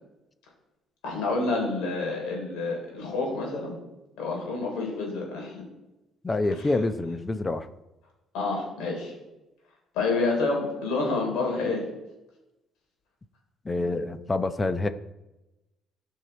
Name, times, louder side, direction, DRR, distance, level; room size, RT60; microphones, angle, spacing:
voice 1, 1.0-3.7 4.2-5.6 6.5-6.8 8.3-9.1 9.9-11.9, left 3 dB, 85° left, 0 dB, 3.6 m, -28 dB
voice 2, 6.2-7.7 13.6-14.9, left 2 dB, 25° left, 11 dB, 0.7 m, -27 dB
14.5 x 5.6 x 4.5 m, 0.99 s
cardioid pair, 85°, 0 cm